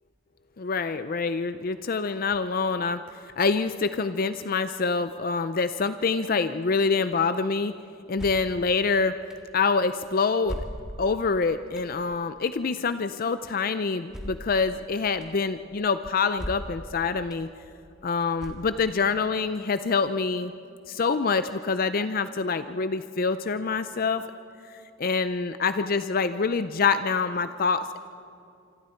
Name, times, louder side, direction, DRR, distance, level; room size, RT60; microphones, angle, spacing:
voice 1, 0.6-3.0 3.4-7.7 8.1-9.1 9.5-10.6 11.0-17.5 18.0-20.5 20.9-24.2 25.0-28.0, left 4 dB, 45° left, 11 dB, 0.5 m, -26 dB
sound 1, 8.2-8.5 9.3-9.4 10.4-11.1 11.8-11.9 14.1-14.6 15.2-15.3 16.3-16.8 17.3-17.4 18.4-18.9, equal, 5° right, 1.9 m, -37 dB
26.5 x 25.5 x 4.5 m, 2.5 s
head